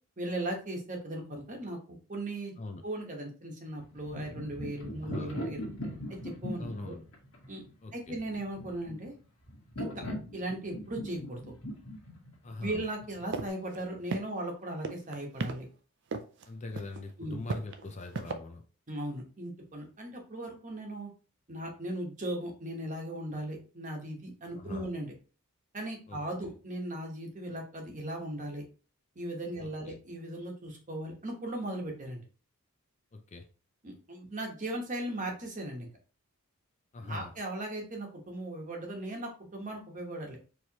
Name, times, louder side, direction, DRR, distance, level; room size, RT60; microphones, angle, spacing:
voice 1, 0.2-2.5 2.8-5.6 6.1-6.9 7.5-7.6 7.9-9.1 9.8-10.0 10.3-11.4 12.6-15.7 17.2-17.4 18.9-21.1 21.5-25.1 25.7-28.6 29.1-32.2 33.8-35.9 37.0-40.4, right 1 dB, 35° right, 1.1 m, -38 dB
sound 1, 3.8-13.5, equal, 65° left, 1.4 m, -40 dB
voice 2, 5.0-5.3 6.6-7.0 7.8-8.2 12.4-12.8 16.5-18.6 24.6-24.9 26.1-26.2 29.6-30.0 33.1-33.5 36.9-37.3, left 2 dB, 30° left, 0.4 m, -42 dB
sound 2, 13.3-13.5 13.7-13.8 14.1-14.5 14.8-15.5 16.1-16.5 16.8-17.0 17.5-18.3, right 3 dB, 55° right, 0.5 m, -34 dB
4.6 x 3.1 x 2.8 m
head